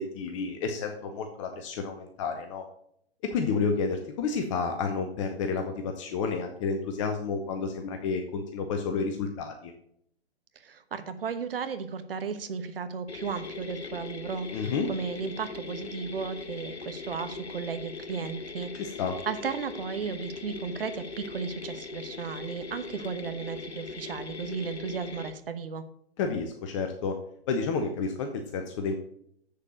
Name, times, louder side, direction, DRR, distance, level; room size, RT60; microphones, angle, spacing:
voice 1, 0.0-2.6 3.3-9.7 14.5-14.9 18.7-19.1 26.2-27.2 27.5-28.9, left 5 dB, 30° left, 5 dB, 0.8 m, -30 dB
voice 2, 10.5-18.9 19.3-25.8, right 6 dB, 60° right, 10 dB, 1.1 m, -35 dB
sound 1, 13.1-25.3, left 4 dB, 80° left, 0.9 m, -40 dB
7.3 x 6.7 x 6.3 m, 0.70 s
figure-of-eight pair, 120°, 32 cm